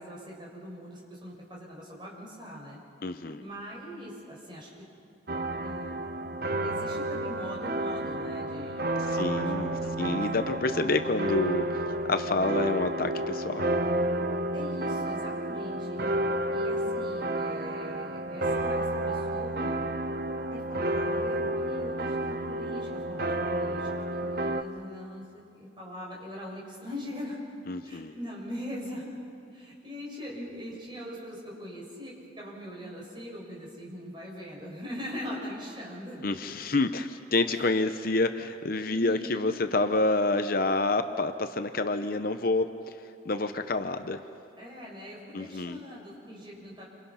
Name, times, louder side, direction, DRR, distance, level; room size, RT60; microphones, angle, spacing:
voice 1, 0.0-2.8 3.4-4.7 5.6-6.0 6.6-10.2 14.5-16.0 16.5-19.8 20.5-25.2 25.5-27.4 27.8-29.2 29.5-36.3 37.5-37.6 38.9-39.5 44.6-46.8, equal, 25° right, -4 dB, 6.7 m, -41 dB
voice 2, 3.0-3.4 9.1-13.7 27.7-28.1 36.2-42.9 43.2-44.2 45.3-45.8, left 2 dB, 50° left, 8 dB, 0.8 m, -28 dB
sound 1, 5.3-24.6, right 1 dB, 50° right, 0.9 m, -31 dB
29.0 x 27.0 x 5.8 m, 2.5 s
head